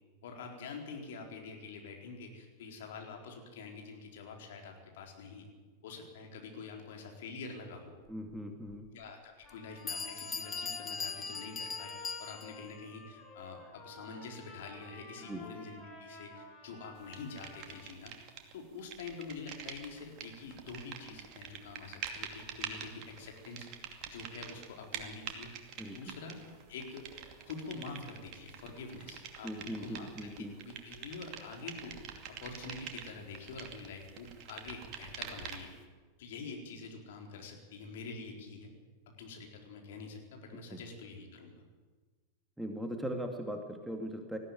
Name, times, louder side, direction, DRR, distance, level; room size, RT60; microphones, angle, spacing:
voice 1, 0.2-5.5 5.8-7.9 8.9-18.2 18.5-23.7 24.1-25.5 25.8-26.4 26.7-27.1 27.4-30.1 30.4-35.7 36.2-38.7 39.1-41.6, left 4 dB, 55° left, 2 dB, 4.1 m, -46 dB
voice 2, 8.1-8.9 15.3-15.4 25.8-26.0 29.4-30.5 40.7-40.8 42.6-44.4, equal, 5° right, 4 dB, 2.3 m, -39 dB
Bell, 8.7-8.8 9.5-9.6 9.9-12.7, left 5 dB, 15° left, 1.1 m, -40 dB
Trumpet, 9.4-17.9, left 2 dB, 35° left, 6.7 m, -52 dB
sound 1, 17.1-18.5 18.8-35.8, right 8 dB, 40° right, 2.6 m, -46 dB
19.5 x 14.5 x 9.3 m, 1.4 s
figure-of-eight pair, 90°, 0 cm